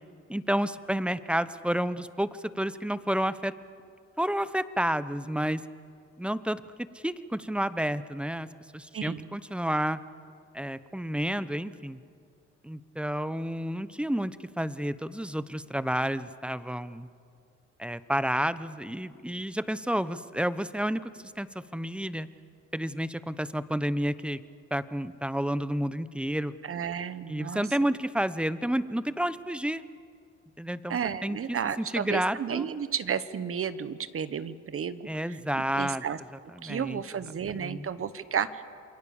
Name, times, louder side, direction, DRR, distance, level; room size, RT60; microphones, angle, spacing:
voice 1, 0.3-3.5 4.2-5.6 6.2-6.6 7.0-8.5 8.7-10.0 10.5-12.0 12.6-17.1 17.8-21.5 21.7-22.3 22.7-24.4 24.7-26.5 27.3-29.8 30.6-32.6 35.1-36.0 36.6-37.0 37.5-37.9, equal, 5° right, 15 dB, 0.9 m, -30 dB
voice 2, 8.9-9.3 26.6-27.7 30.9-35.4 35.8-36.2 36.6-38.6, right 7 dB, 45° right, 14 dB, 1.2 m, -32 dB
28.0 x 22.5 x 7.2 m, 2.3 s
cardioid pair, 90°, 30 cm